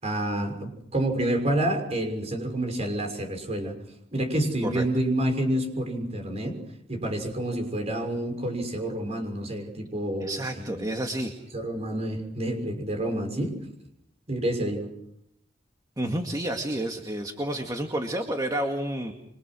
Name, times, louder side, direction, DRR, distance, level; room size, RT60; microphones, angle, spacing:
voice 1, 0.0-3.8 4.1-6.6 6.9-10.8 11.5-13.5 14.3-14.9, right 1 dB, 35° right, 5 dB, 6.3 m, -28 dB
voice 2, 10.2-11.3 16.0-19.1, right 1 dB, 20° right, 3 dB, 2.0 m, -30 dB
28.5 x 25.5 x 6.3 m, 0.76 s
head